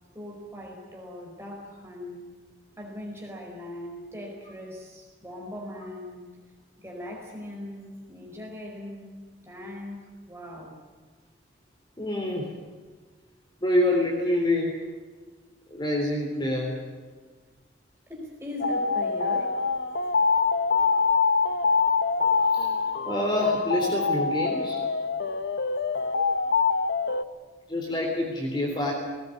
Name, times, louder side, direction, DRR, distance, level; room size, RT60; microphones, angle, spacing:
voice 1, 0.1-2.3 2.8-6.2 6.8-9.2 9.4-10.8 18.1-19.6, left 1 dB, 15° right, -1 dB, 4.9 m, -40 dB
voice 2, 12.0-12.5 13.6-14.7 15.7-16.8 22.5-22.7 23.1-24.8 27.7-28.9, left 1 dB, 25° left, 0 dB, 3.7 m, -26 dB
sound 1, 18.6-27.2, left 5 dB, 65° left, 1.0 m, -25 dB
19.5 x 19.5 x 9.8 m, 1.4 s
head